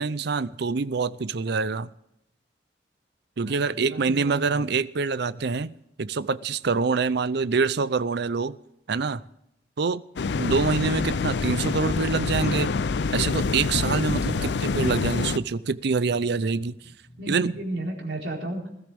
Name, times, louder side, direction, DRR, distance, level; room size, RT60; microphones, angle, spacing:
voice 1, 0.0-1.9 3.4-5.7 6.0-8.6 8.9-9.2 9.8-10.0 10.4-12.7 13.1-16.8 17.3-17.5, right 4 dB, 65° right, 17 dB, 0.6 m, -25 dB
voice 2, 3.4-4.7 14.3-14.7 17.2-18.7, right 1 dB, 85° right, -1 dB, 4.4 m, -34 dB
sound 1, 10.2-15.4, left 4 dB, 70° left, 0.5 m, -26 dB
sound 2, 15.4-17.9, equal, 50° left, 1.9 m, -51 dB
20.5 x 13.5 x 3.5 m, 0.81 s
head